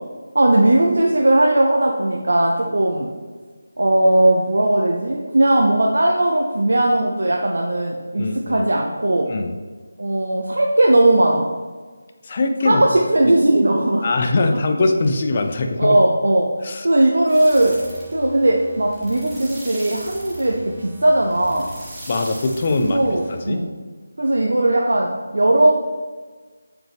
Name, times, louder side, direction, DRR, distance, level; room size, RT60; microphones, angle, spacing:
voice 1, 0.3-3.1 3.8-9.3 10.0-11.5 12.6-14.1 15.8-16.5 16.8-17.8 18.1-21.7 22.8-23.8 24.2-25.7, right 1 dB, 70° right, -1 dB, 0.8 m, -18 dB
voice 2, 8.2-8.7 9.3-9.5 12.2-12.8 14.0-16.0 16.6-16.9 22.1-23.0 23.3-23.6, left 3 dB, 35° left, 5 dB, 0.7 m, -21 dB
sound 1, 17.2-23.6, right 1 dB, 10° right, 1.4 m, -38 dB
7.4 x 5.0 x 3.5 m, 1.4 s
figure-of-eight pair, 160°, 0 cm